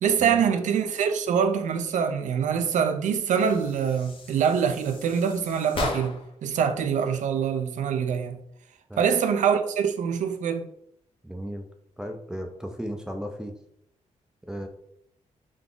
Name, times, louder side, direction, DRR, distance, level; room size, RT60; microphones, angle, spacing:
voice 1, 0.0-8.4 9.0-10.7, right 7 dB, 85° right, 0.5 m, -24 dB
sound 1, 3.3-6.4, left 3 dB, 45° left, 0.8 m, -36 dB
voice 2, 11.2-11.7 12.0-13.5 14.5-14.7, equal, 5° right, 0.4 m, -35 dB
3.8 x 3.5 x 3.7 m
wide cardioid pair, 155°, 12 cm